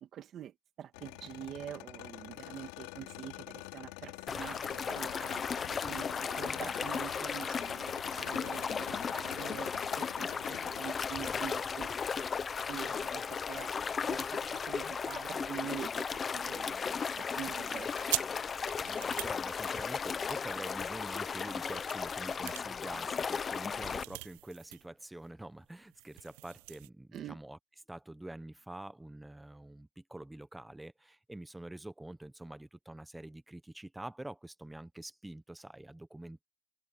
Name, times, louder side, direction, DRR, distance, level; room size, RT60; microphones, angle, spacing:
voice 1, 0.0-5.5 5.9-12.3 12.7-13.7 14.0-17.9 27.1-27.4, right 10 dB, 35° right, 2.0 m, -46 dB
sound 1, 0.9-10.9, left 23 dB, 80° left, 4.1 m, -47 dB
sound 2, 4.3-24.0, left 6 dB, 20° left, 0.9 m, -36 dB
sound 3, 17.3-20.4 21.0-24.9 25.2-25.3 25.6-26.9, right 24 dB, 80° right, 0.5 m, -43 dB
voice 2, 18.9-27.6 27.9-36.4, right 1 dB, 5° right, 1.0 m, -46 dB
cardioid pair, 150°, 0 cm